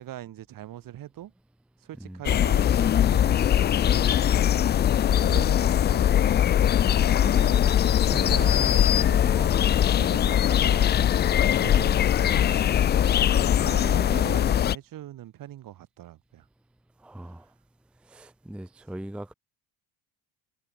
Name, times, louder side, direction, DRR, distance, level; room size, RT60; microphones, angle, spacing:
voice 1, 0.0-1.3 1.8-4.5 5.3-6.2 6.6-11.2 11.6-12.7 13.3-16.5 17.2-17.4, right 13 dB, 40° right, 1.7 m, -42 dB
sound 1, 2.2-14.7, left 10 dB, 25° left, 0.3 m, -21 dB
voice 2, 8.1-8.5 12.9-13.2 17.0-17.5 18.1-19.3, right 1 dB, ahead, 0.7 m, -40 dB
cardioid pair, 155°, 50 cm